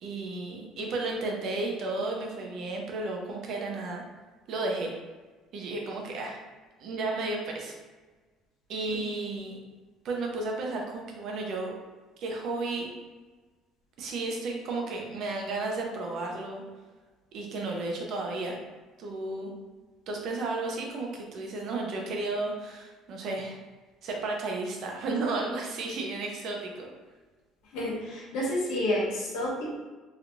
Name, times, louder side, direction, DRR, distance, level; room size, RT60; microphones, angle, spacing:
voice 1, 0.0-4.0 4.5-4.9 5.5-6.4 6.8-7.7 8.7-9.6 10.0-11.8 12.2-12.9 14.0-16.6 17.3-18.6 19.0-19.5 20.1-23.6 24.0-26.9, right 3 dB, 45° right, 0 dB, 0.6 m, -33 dB
voice 2, 27.7-29.7, left 1 dB, 80° left, -4 dB, 1.1 m, -30 dB
3.2 x 3.0 x 2.5 m, 1.3 s
cardioid pair, 175°, 0 cm